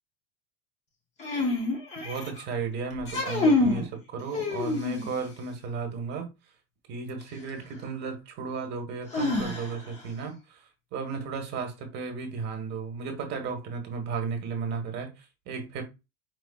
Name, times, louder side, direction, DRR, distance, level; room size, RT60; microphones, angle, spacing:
sound 1, 1.2-2.4 3.0-3.9 4.3-5.2 7.2-7.3 9.1-10.0, left 3 dB, 20° left, 0.7 m, -27 dB
voice 1, 1.9-6.3 6.9-15.8, right 5 dB, 30° right, 1.1 m, -34 dB
4.7 x 3.8 x 2.2 m
cardioid pair, 180°, 35 cm